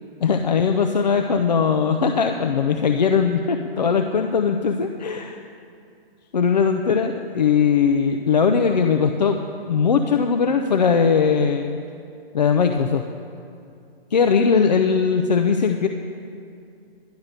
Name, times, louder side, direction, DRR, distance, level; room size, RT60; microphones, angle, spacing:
voice 1, 0.2-5.4 6.3-9.4 9.7-11.8 12.3-13.0 14.1-15.9, left 6 dB, 45° left, 5 dB, 0.5 m, -19 dB
11.5 x 10.5 x 6.6 m, 2.5 s
hypercardioid pair, 165°, 31 cm